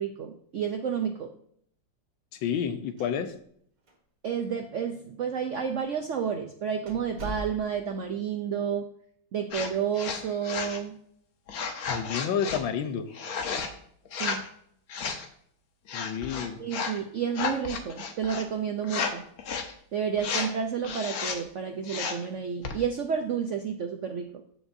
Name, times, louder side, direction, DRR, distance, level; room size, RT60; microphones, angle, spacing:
voice 1, 0.0-1.3 4.2-8.9 9.3-11.0 14.2-14.4 16.6-19.2 19.9-24.3, right 7 dB, 75° right, 4 dB, 0.7 m, -30 dB
voice 2, 2.3-3.3 11.9-13.1 15.9-16.7, left 8 dB, 85° left, 9 dB, 1.6 m, -30 dB
sound 1, 2.8-3.6 3.9-4.0 4.7-4.8 5.6-5.8 6.2-6.3 6.9-8.0, equal, 45° right, 2.2 m, -41 dB
sound 2, 9.5-9.7 10.0-10.8 11.5-12.6 13.1-13.7 14.1-14.5 14.9-15.3 15.9-17.0 17.3-18.4 18.8-19.1 19.4-19.7 20.2-20.5 20.8-21.4 21.8-22.3 22.6-22.8, left 5 dB, 60° left, 1.2 m, -32 dB
14.5 x 5.0 x 2.7 m, 0.65 s
omnidirectional pair, 2.1 m